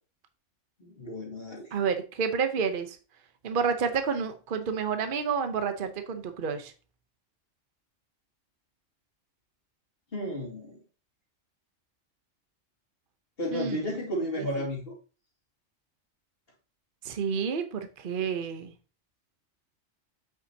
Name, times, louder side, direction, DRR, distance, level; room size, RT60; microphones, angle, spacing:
voice 1, 0.8-1.7 10.1-10.8 13.4-15.0, equal, 50° left, -2 dB, 2.5 m, -33 dB
voice 2, 1.7-3.0 3.4-6.7 13.5-14.0 14.4-14.5 17.0-18.7, right 6 dB, 45° right, 8 dB, 1.0 m, -29 dB
8.0 x 6.6 x 2.8 m, 0.35 s
omnidirectional pair, 1.3 m